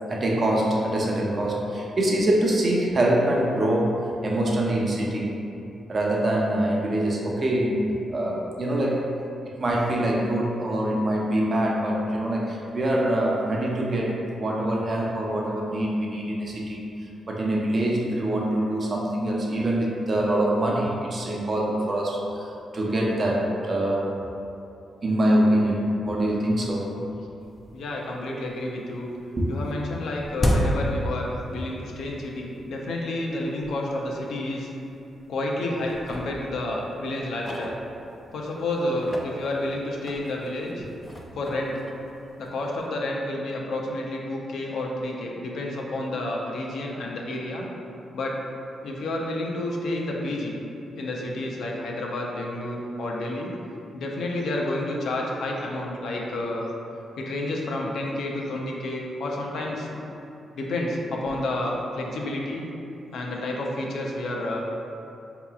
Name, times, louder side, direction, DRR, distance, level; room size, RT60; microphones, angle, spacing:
voice 1, 0.1-5.4 5.9-9.1 9.5-16.9 17.3-24.1 25.0-26.9 29.4-29.5 31.6-31.7, right 1 dB, 40° right, -2 dB, 0.6 m, -24 dB
sound 1, 27.6-27.7 28.1-28.7 28.9-31.9 32.2-32.3 33.0-33.1 33.6-33.7 34.1-34.2 34.9-35.5 35.8-38.4 38.9-42.8, equal, 25° left, 0.4 m, -32 dB
voice 2, 27.7-29.1 29.5-34.7 35.3-37.8 38.3-40.9 41.3-41.8 42.4-47.6 48.1-48.4 48.8-50.5 51.0-53.5 53.9-56.7 57.2-60.0 60.5-62.7 63.1-64.9, left 1 dB, 80° left, -1 dB, 0.5 m, -30 dB
4.7 x 2.8 x 2.3 m, 2.8 s
cardioid pair, 95°, 0 cm